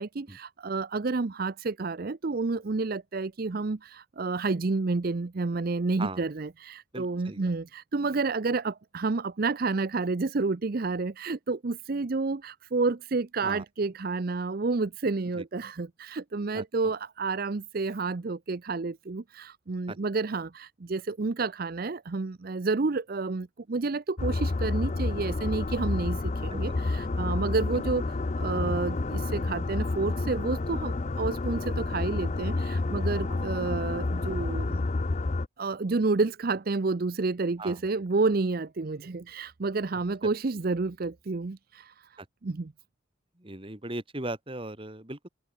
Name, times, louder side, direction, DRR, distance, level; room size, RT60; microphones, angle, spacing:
voice 1, 0.0-34.8 35.6-42.7, right 3 dB, 45° right, 0.6 m, -30 dB
voice 2, 6.9-7.5 13.4-13.6 15.4-15.5 16.5-16.9 19.9-20.0 26.5-26.8 27.7-27.8 33.3-33.4 37.6-37.8 42.2-42.3 43.4-45.3, right 2 dB, 25° right, 1.8 m, -38 dB
sound 1, 24.2-35.5, left 2 dB, 35° left, 0.5 m, -29 dB
open air
head